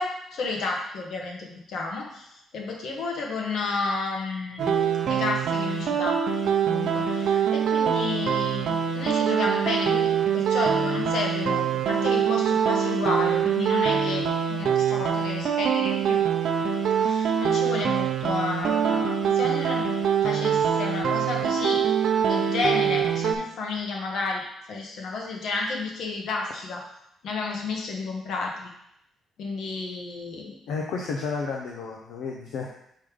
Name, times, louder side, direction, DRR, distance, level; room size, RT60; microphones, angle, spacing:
voice 1, 0.0-4.7 5.0-14.2 14.5-16.2 17.0-19.9 20.2-21.8 22.2-26.8 27.2-28.7 29.4-30.6, left 3 dB, 70° left, 0 dB, 1.3 m, -31 dB
sound 1, 4.6-23.3, right 7 dB, 70° right, 0.7 m, -24 dB
voice 2, 30.7-32.8, left 4 dB, 85° left, -1 dB, 0.7 m, -32 dB
5.4 x 3.7 x 5.0 m, 0.75 s
cardioid pair, 90°, 0 cm